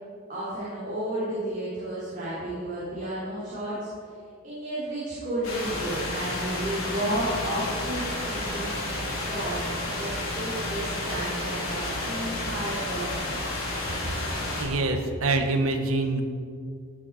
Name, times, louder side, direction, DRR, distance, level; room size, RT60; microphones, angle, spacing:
voice 1, 0.3-3.9 4.4-8.7 9.2-13.4, right 1 dB, 35° right, -9 dB, 3.6 m, -32 dB
sound 1, 5.4-14.6, left 1 dB, 80° left, 3.8 m, -31 dB
voice 2, 14.6-16.2, right 2 dB, 85° right, 5 dB, 1.4 m, -25 dB
16.5 x 9.2 x 4.9 m, 2.3 s
head